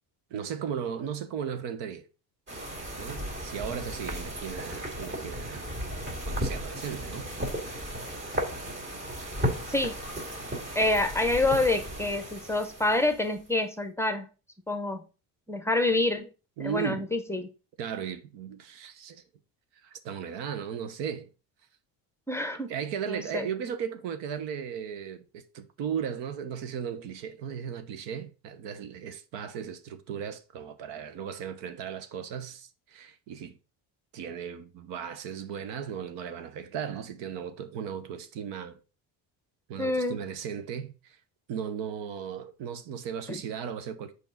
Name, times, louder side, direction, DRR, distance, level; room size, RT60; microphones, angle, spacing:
voice 1, 0.3-2.0 3.0-5.6 6.2-7.3 7.7-8.0 16.6-17.1 17.8-19.2 19.8-21.3 22.7-33.6 34.1-38.8 39.7-41.2 41.5-44.1, right 8 dB, 80° right, 1.1 m, -36 dB
sound 1, 2.5-13.5, equal, 25° right, 2.2 m, -35 dB
voice 2, 10.7-14.3 14.7-15.0 15.5-16.3 16.6-17.4 22.3-22.7 23.1-23.5 39.8-40.2 43.3-43.4, left 2 dB, 5° left, 0.7 m, -27 dB
7.1 x 4.9 x 3.9 m
cardioid pair, 135°, 43 cm